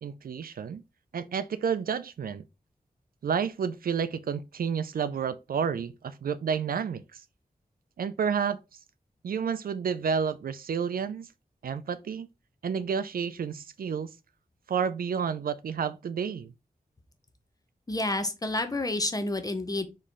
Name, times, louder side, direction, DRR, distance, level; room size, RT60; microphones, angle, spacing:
voice 1, 0.0-0.8 1.1-2.4 3.2-7.2 8.0-8.6 9.2-11.3 11.6-12.3 12.6-14.1 14.7-16.5, right 6 dB, 80° right, 0.4 m, -30 dB
voice 2, 17.9-19.9, left 2 dB, 25° left, 0.7 m, -29 dB
4.3 x 3.1 x 3.7 m
wide cardioid pair, 110°, 15 cm